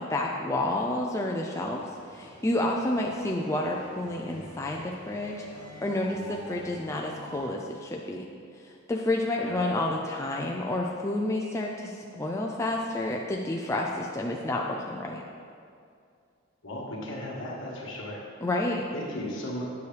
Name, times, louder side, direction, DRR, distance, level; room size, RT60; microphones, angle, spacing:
voice 1, 0.0-1.8 2.1-8.2 8.6-15.2 18.4-18.8, left 1 dB, 15° left, -1 dB, 0.4 m, -30 dB
sound 1, 1.5-7.5, equal, 35° right, 2.0 m, -46 dB
voice 2, 16.6-18.2 18.9-19.6, left 1 dB, 60° left, -3 dB, 1.5 m, -36 dB
9.5 x 6.9 x 3.3 m, 2.3 s
head